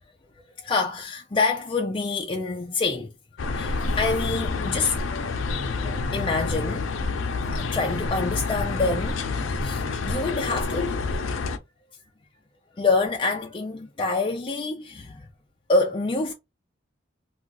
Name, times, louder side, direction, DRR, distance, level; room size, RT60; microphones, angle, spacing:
voice 1, 0.6-3.1 3.5-5.4 5.8-7.1 7.5-9.2 9.6-11.0 12.8-15.3 15.7-16.3, left 3 dB, 25° left, 0.4 m, -26 dB
sound 1, 3.4-11.6, left 3 dB, 85° left, 0.5 m, -28 dB
2.4 x 2.3 x 3.9 m
head